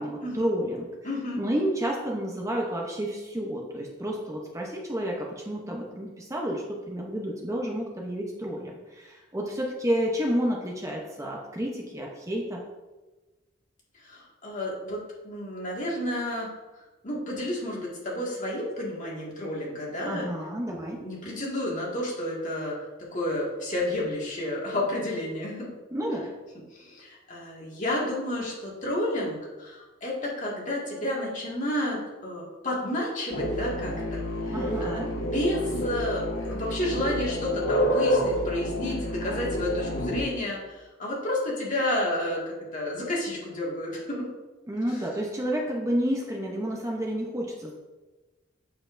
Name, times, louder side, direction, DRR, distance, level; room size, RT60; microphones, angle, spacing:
voice 1, 0.0-0.9 1.4-12.6 20.0-21.0 25.9-26.3 34.5-35.1 44.7-47.7, equal, 15° right, -1 dB, 0.8 m, -30 dB
voice 2, 1.0-1.4 14.0-16.5 17.0-20.3 20.7-22.8 23.1-25.7 26.7-44.3, left 1 dB, 40° left, -4 dB, 1.9 m, -31 dB
sound 1, 33.3-40.2, equal, 90° left, 1.3 m, -28 dB
7.7 x 6.9 x 2.6 m, 1.2 s
head